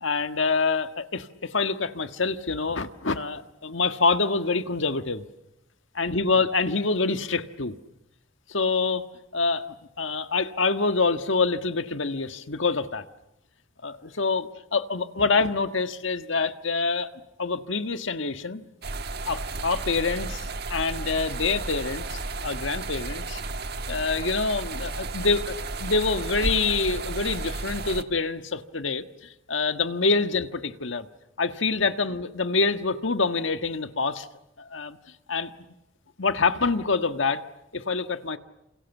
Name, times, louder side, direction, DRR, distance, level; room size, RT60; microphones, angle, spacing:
voice 1, 0.0-5.2 6.0-7.8 8.5-9.1 9.3-9.7 10.0-13.0 13.8-18.6 19.3-23.4 23.9-31.1 31.4-34.3 34.6-35.0 35.3-35.5 36.2-37.4 37.7-38.4, left 4 dB, 70° left, 9 dB, 1.6 m, -26 dB
sound 1, 18.8-28.0, right 3 dB, 55° right, 1.5 m, -33 dB
29.0 x 28.0 x 7.2 m, 0.89 s
head